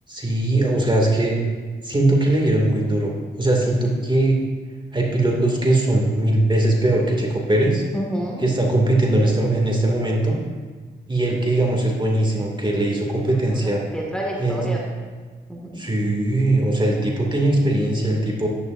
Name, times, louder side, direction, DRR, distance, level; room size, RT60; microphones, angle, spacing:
voice 1, 0.1-1.4 1.8-4.4 4.9-7.8 8.4-10.4 11.1-13.8 14.4-14.6 15.8-18.5, right 1 dB, 25° right, -1 dB, 2.4 m, -20 dB
voice 2, 7.9-8.4 13.6-14.8 15.5-15.9, equal, 5° left, -3 dB, 2.1 m, -29 dB
11.0 x 9.7 x 2.7 m, 1.5 s
supercardioid pair, 45°, 21 cm